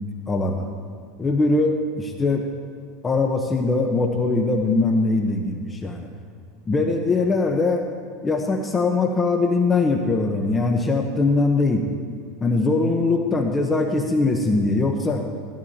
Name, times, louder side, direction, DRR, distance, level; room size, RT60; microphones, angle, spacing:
voice 1, 0.3-0.7 1.2-2.5 3.0-6.1 6.7-7.8 8.2-11.8 12.4-15.2, left 3 dB, 20° left, 3 dB, 1.0 m, -21 dB
16.0 x 14.0 x 2.9 m, 2.2 s
supercardioid pair, 115°, 0 cm